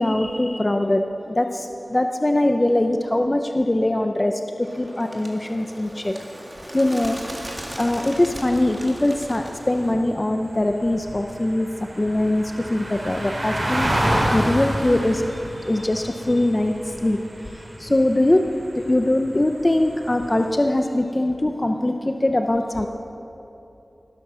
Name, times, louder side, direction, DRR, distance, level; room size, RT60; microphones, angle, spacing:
voice 1, 0.0-6.2 6.7-7.2 7.7-13.9 14.3-18.4 18.8-22.9, left 1 dB, 30° left, 5 dB, 0.7 m, -22 dB
Bird, 4.6-9.9, right 1 dB, 20° right, 2.3 m, -38 dB
sound 1, 7.4-20.5, equal, 50° right, 4.4 m, -30 dB
19.0 x 12.0 x 6.2 m, 3.0 s
wide cardioid pair, 75°, 0 cm